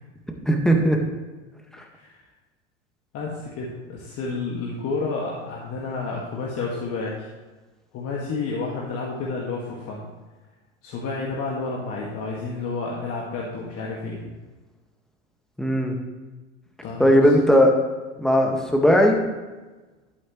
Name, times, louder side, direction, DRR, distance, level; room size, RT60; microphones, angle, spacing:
voice 1, 0.5-1.0 15.6-15.9 17.0-17.7 18.2-19.2, equal, ahead, 2 dB, 1.6 m, -17 dB
voice 2, 3.1-7.3 7.9-10.1 10.8-14.2 16.8-17.3, left 3 dB, 40° left, -3 dB, 2.0 m, -30 dB
12.5 x 8.2 x 3.1 m, 1.2 s
hypercardioid pair, 95°, 38 cm